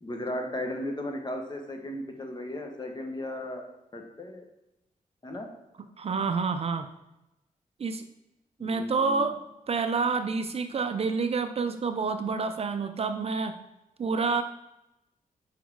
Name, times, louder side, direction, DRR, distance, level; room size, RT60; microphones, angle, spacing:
voice 1, 0.0-3.6 3.9-4.4 5.2-5.5 8.6-9.3, left 1 dB, 30° left, 4 dB, 0.9 m, -35 dB
voice 2, 6.0-6.9 7.8-8.0 8.6-9.4 9.7-13.5 14.0-14.4, right 4 dB, 45° right, 8 dB, 0.4 m, -28 dB
5.1 x 4.1 x 4.6 m, 0.88 s
wide cardioid pair, 105°, 14 cm